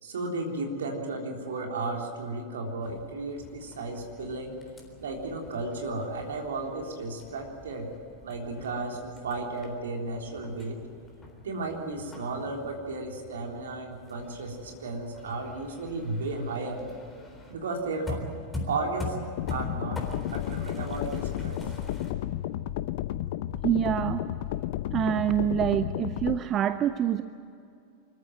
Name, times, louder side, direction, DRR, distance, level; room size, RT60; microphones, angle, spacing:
voice 1, 0.0-4.6 5.0-7.9 8.2-10.8 11.4-16.8 17.5-18.2 18.7-19.2 19.5-20.0 20.3-21.6, right 3 dB, 65° right, 1 dB, 3.6 m, -34 dB
sound 1, 2.8-22.1, left 1 dB, 10° left, 3.9 m, -43 dB
sound 2, 19.4-26.4, left 13 dB, 50° left, 0.7 m, -32 dB
voice 2, 23.6-24.2 24.9-27.2, right 10 dB, 30° right, 13 dB, 0.6 m, -26 dB
25.0 x 14.0 x 9.2 m, 2.6 s
figure-of-eight pair, 90°, 0 cm